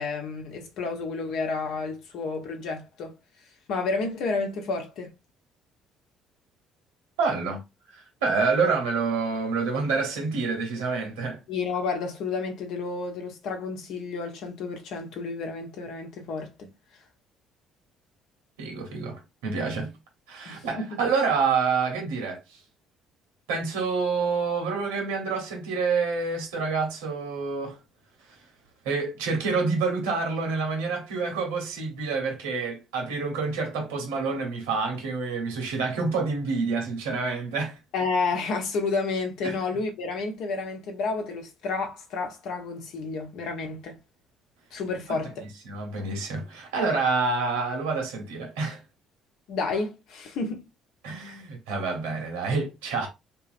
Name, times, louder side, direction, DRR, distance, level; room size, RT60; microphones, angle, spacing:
voice 1, 0.0-3.1 3.7-5.1 11.5-16.7 20.5-21.0 37.9-44.0 44.7-45.5 49.5-50.7, left 4 dB, 70° left, 0.9 m, -31 dB
voice 2, 7.2-7.6 8.2-11.4 18.6-19.9 20.3-22.4 23.5-27.8 28.8-37.8 39.4-39.6 45.1-45.2 45.7-48.8 51.0-53.1, right 4 dB, 85° right, 1.1 m, -27 dB
2.9 x 2.7 x 2.6 m
hypercardioid pair, 55°, 0 cm